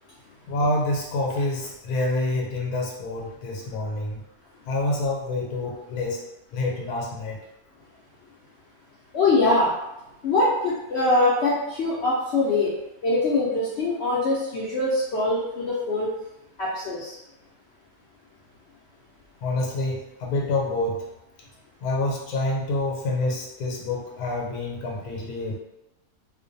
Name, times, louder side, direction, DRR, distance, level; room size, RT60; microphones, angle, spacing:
voice 1, 0.5-4.2 4.7-6.2 6.5-7.4 19.4-21.0 21.8-25.6, left 2 dB, 85° left, -2 dB, 1.1 m, -27 dB
voice 2, 9.1-9.7 10.2-12.7 13.0-16.1 16.6-17.1, left 2 dB, 70° left, -7 dB, 0.6 m, -23 dB
2.4 x 2.2 x 2.6 m, 0.90 s
omnidirectional pair, 1.6 m